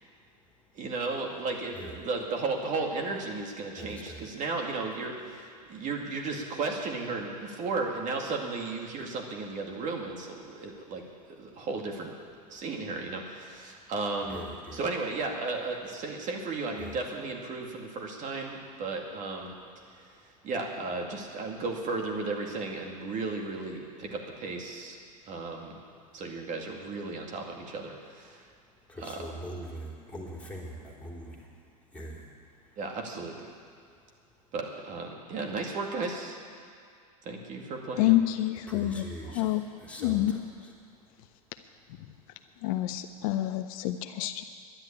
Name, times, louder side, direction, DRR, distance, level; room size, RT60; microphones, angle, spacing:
voice 1, 0.7-11.0 11.4-12.1 12.5-14.4 14.7-19.5 20.4-25.0 25.3-25.8 26.1-28.4 29.0-29.3 32.8-33.5 34.5-36.4 37.3-38.2, right 3 dB, 40° right, 1 dB, 2.3 m, -34 dB
voice 2, 1.7-2.0 3.8-4.3 14.3-14.8 16.8-17.0 28.9-31.4 31.9-32.2 38.7-39.5 39.8-40.7, equal, 5° left, -2 dB, 3.6 m, -42 dB
voice 3, 38.0-39.6 40.0-40.4 42.6-44.4, left 14 dB, 60° left, 9 dB, 0.7 m, -27 dB
11.5 x 10.5 x 8.7 m, 2.3 s
hypercardioid pair, 100°, 20 cm